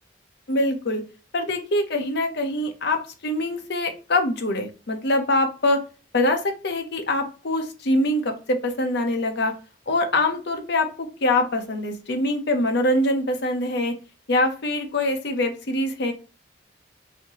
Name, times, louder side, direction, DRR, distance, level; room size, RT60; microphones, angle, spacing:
voice 1, 0.5-1.0 1.3-5.8 6.1-9.5 9.9-13.9 14.3-16.1, left 1 dB, 65° left, 5 dB, 0.8 m, -24 dB
4.3 x 2.8 x 2.9 m, 0.34 s
head